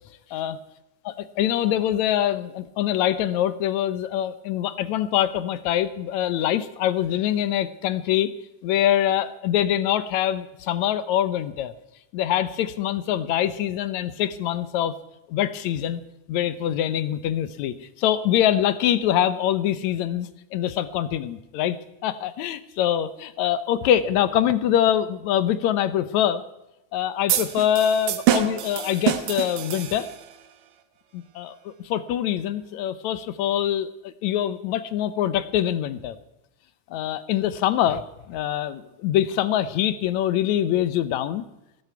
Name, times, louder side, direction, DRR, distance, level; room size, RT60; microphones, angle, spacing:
voice 1, 1.4-8.3 8.6-11.7 12.1-14.9 15.3-16.0 16.3-21.8 22.0-26.4 26.9-30.1 31.1-36.2 36.9-41.4, left 11 dB, 75° left, 13 dB, 2.0 m, -24 dB
sound 1, 27.3-30.4, right 12 dB, 90° right, 2.8 m, -26 dB
18.5 x 17.0 x 4.7 m, 0.90 s
omnidirectional pair, 3.6 m